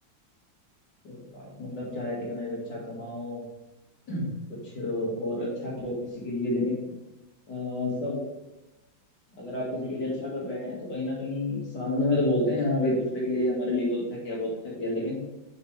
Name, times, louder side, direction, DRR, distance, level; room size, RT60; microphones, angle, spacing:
voice 1, 1.0-3.4 4.1-4.3 4.6-6.8 7.5-8.2 9.4-15.2, left 1 dB, 55° left, -4 dB, 2.7 m, -29 dB
6.6 x 6.5 x 3.4 m, 1.0 s
omnidirectional pair, 2.2 m